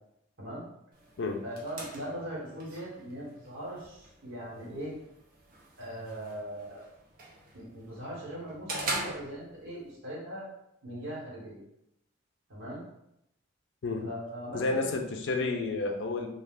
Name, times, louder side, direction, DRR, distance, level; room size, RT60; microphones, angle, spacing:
sound 1, 0.9-9.9, right 2 dB, 45° right, 0.5 m, -43 dB
voice 1, 1.4-4.9 5.8-6.8 7.5-10.5 10.8-11.6 12.5-12.8 14.0-14.9, equal, 80° right, -6 dB, 1.2 m, -40 dB
voice 2, 14.5-16.3, left 3 dB, 60° left, 3 dB, 0.4 m, -30 dB
2.4 x 2.3 x 3.4 m, 0.80 s
head